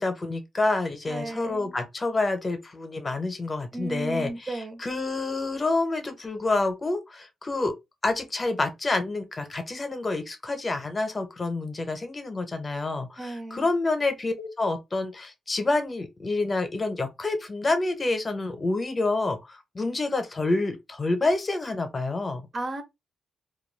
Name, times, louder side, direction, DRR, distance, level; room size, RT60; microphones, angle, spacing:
voice 1, 0.0-7.7 8.0-22.5, left 2 dB, 30° left, 0.7 m, -28 dB
voice 2, 1.1-1.8 3.7-4.8 13.2-13.7 22.5-22.8, right 2 dB, 40° right, 0.7 m, -34 dB
2.3 x 2.1 x 3.2 m
cardioid pair, 80°, 0 cm